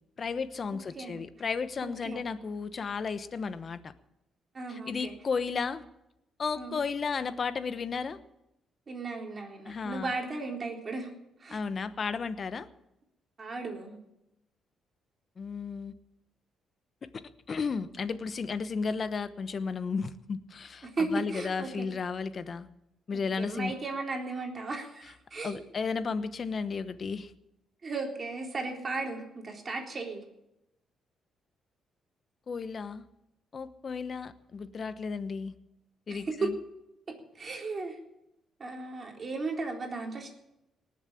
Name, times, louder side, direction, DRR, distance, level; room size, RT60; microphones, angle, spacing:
voice 1, 0.2-3.9 4.7-5.8 6.4-8.2 9.6-10.1 11.5-12.7 15.4-15.9 17.0-22.7 23.1-23.7 25.4-27.3 32.5-33.0 33.5-35.5 36.1-36.5, left 5 dB, 45° left, 12 dB, 1.0 m, -34 dB
voice 2, 1.8-2.2 4.5-5.1 6.6-6.8 8.9-11.1 11.4-11.6 13.4-14.0 20.8-21.9 23.1-25.6 27.8-30.2 36.1-36.5 37.1-38.0 38.6-40.3, right 3 dB, 35° right, 1 dB, 3.7 m, -35 dB
19.0 x 7.4 x 9.9 m, 0.87 s
cardioid pair, 90°, 0 cm